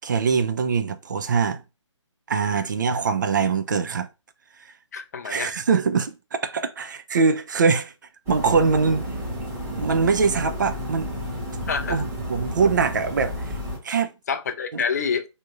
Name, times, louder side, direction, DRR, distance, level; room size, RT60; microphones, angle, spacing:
voice 1, 0.0-1.6 2.3-4.1 5.2-7.9 8.3-9.1 9.7-11.1 11.9-13.5 13.8-14.1 14.7-14.8, right 5 dB, 40° right, 0.4 m, -23 dB
voice 2, 4.9-5.5 11.7-12.0 14.3-15.3, left 6 dB, 35° left, 0.4 m, -27 dB
sound 1, 8.3-13.8, equal, 15° right, 1.2 m, -31 dB
3.4 x 2.7 x 2.5 m
figure-of-eight pair, 140°, 16 cm